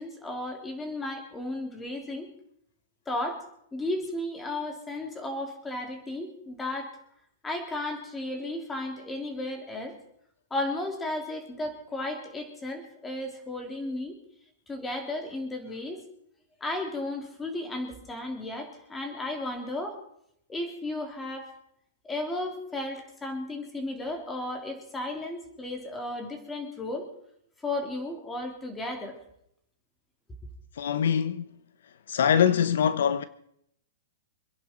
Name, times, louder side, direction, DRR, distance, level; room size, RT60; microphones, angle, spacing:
voice 1, 0.0-2.3 3.1-3.4 3.7-6.9 7.4-9.9 10.5-14.2 14.7-16.0 16.6-20.0 20.5-21.5 22.0-27.1 27.6-29.2, left 2 dB, 10° left, 3.2 m, -34 dB
voice 2, 30.8-31.5 32.1-33.2, left 8 dB, 75° left, 0.9 m, -23 dB
27.0 x 10.5 x 4.5 m
hypercardioid pair, 155°, 0 cm